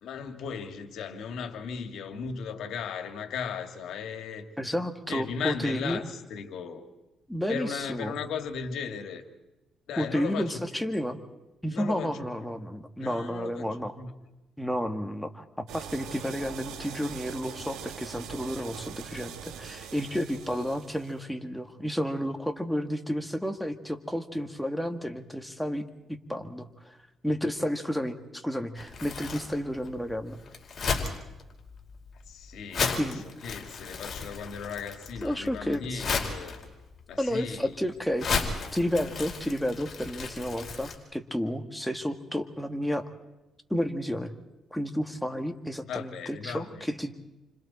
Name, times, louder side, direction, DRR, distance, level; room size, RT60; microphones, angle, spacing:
voice 1, 0.0-4.5 5.1-6.9 7.5-9.2 9.9-10.8 11.7-12.2 13.0-14.1 32.3-36.6 37.1-37.7 45.9-46.9, left 6 dB, 80° left, 6 dB, 2.5 m, -36 dB
voice 2, 4.6-6.0 7.3-8.1 10.0-11.2 11.6-13.9 14.6-15.4 15.7-25.8 26.3-27.0 27.2-30.4 33.0-33.2 35.2-36.1 37.2-43.0 43.7-44.3 44.7-47.1, equal, ahead, 5 dB, 2.1 m, -31 dB
sound 1, 15.7-21.2, right 8 dB, 90° right, 2.2 m, -42 dB
Crumpling crinkling, 28.8-40.9, left 5 dB, 45° left, 4.8 m, -35 dB
29.5 x 26.0 x 4.4 m, 0.99 s
cardioid pair, 90°, 0 cm